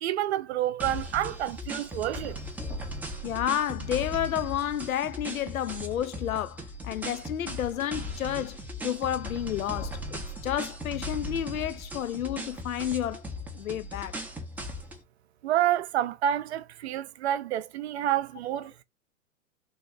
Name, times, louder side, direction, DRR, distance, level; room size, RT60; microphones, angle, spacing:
voice 1, 0.0-2.4 15.4-18.8, right 12 dB, 50° right, 0.6 m, -28 dB
sound 1, 0.8-15.0, left 1 dB, 5° right, 0.5 m, -38 dB
voice 2, 3.2-8.6 8.8-13.2 13.5-14.2, left 10 dB, 80° left, 0.6 m, -31 dB
3.6 x 2.5 x 3.1 m
figure-of-eight pair, 110°, 41 cm